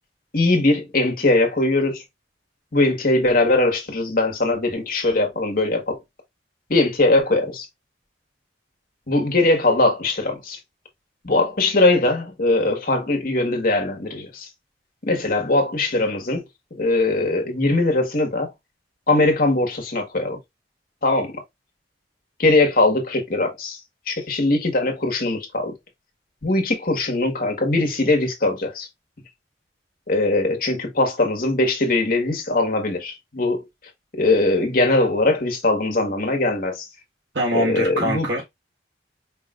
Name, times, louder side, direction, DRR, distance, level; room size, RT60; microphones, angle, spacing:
voice 1, 0.3-2.0 2.7-6.0 6.7-7.7 9.1-10.6 11.2-14.5 15.0-16.4 16.7-18.5 19.1-20.4 21.0-21.3 22.4-23.8 24.1-25.7 26.4-28.9 30.1-33.6 34.1-36.9 37.5-38.3, left 2 dB, 50° left, 1.4 m, -20 dB
voice 2, 37.3-38.5, equal, 80° right, 1.7 m, -23 dB
5.2 x 3.2 x 2.4 m
head